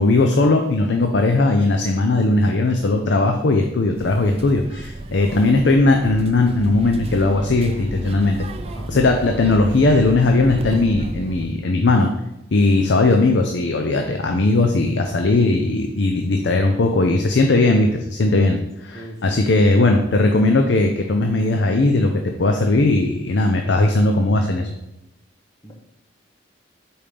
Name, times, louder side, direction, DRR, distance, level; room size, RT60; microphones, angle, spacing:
voice 1, 0.0-8.4 8.9-12.1 12.5-24.7, left 2 dB, 65° left, 4 dB, 0.5 m, -18 dB
sound 1, 4.0-11.5, right 2 dB, 30° right, 0.4 m, -32 dB
voice 2, 18.9-19.4 25.6-25.7, right 1 dB, 20° left, 1 dB, 0.9 m, -37 dB
5.2 x 4.4 x 5.0 m, 0.88 s
head